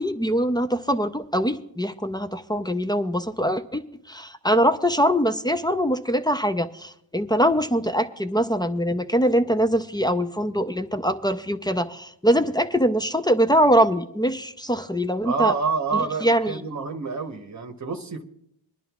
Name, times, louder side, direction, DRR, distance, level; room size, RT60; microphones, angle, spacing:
voice 1, 0.0-15.5 15.9-16.6, equal, 10° left, 9 dB, 0.5 m, -23 dB
voice 2, 15.2-18.2, right 5 dB, 40° right, 4 dB, 1.0 m, -27 dB
25.5 x 11.0 x 2.4 m, 0.73 s
cardioid pair, 80°, 45 cm